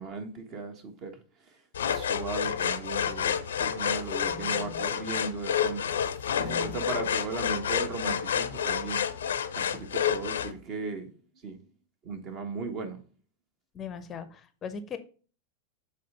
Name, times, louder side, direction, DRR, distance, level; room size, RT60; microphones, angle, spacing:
voice 1, 0.0-1.6 1.9-9.1 9.5-11.1 11.4-11.6 12.0-13.0, right 4 dB, 40° right, 1.5 m, -37 dB
sound 1, 1.7-10.5, left 8 dB, 65° left, 0.6 m, -29 dB
voice 2, 4.2-4.9 6.4-7.0 13.7-15.0, left 6 dB, 25° left, 0.7 m, -41 dB
7.6 x 3.7 x 5.1 m
figure-of-eight pair, 90°, 0 cm